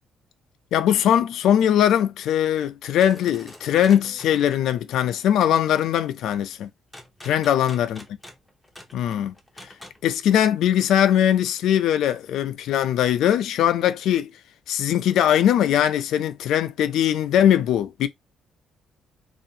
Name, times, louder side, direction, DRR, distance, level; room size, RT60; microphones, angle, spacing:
voice 1, 0.7-6.7 7.2-8.0 8.9-9.3 9.6-9.7 10.0-14.3 14.7-18.1, left 10 dB, 85° left, 0.3 m, -21 dB
sound 1, 3.0-4.6 6.9-10.0, left 1 dB, 5° left, 0.6 m, -45 dB
2.6 x 2.4 x 2.7 m
cardioid pair, 150°, 0 cm